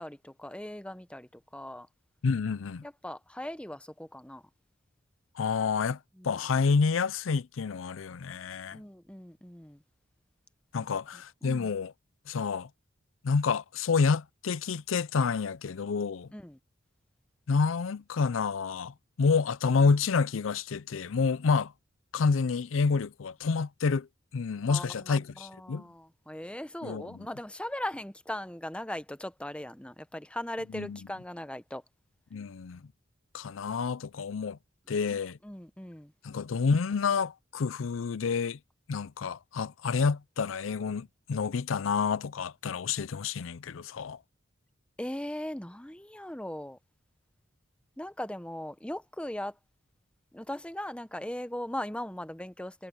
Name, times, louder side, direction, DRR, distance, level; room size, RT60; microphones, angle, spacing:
voice 1, 0.0-1.9 2.8-4.4 6.2-6.4 8.7-9.8 10.8-11.7 16.3-16.6 19.3-19.4 24.7-31.8 35.1-36.1 45.0-46.8 48.0-49.6 50.3-52.9, left 1 dB, 5° left, 0.9 m, -39 dB
voice 2, 2.2-2.8 5.4-6.0 6.2-8.8 10.7-11.9 12.3-12.7 13.2-16.3 17.5-21.7 22.1-24.1 24.3-25.8 26.8-27.1 30.7-31.0 32.3-32.8 33.3-34.6 34.9-35.4 36.2-38.6 38.9-44.2, left 5 dB, 90° left, 0.5 m, -28 dB
head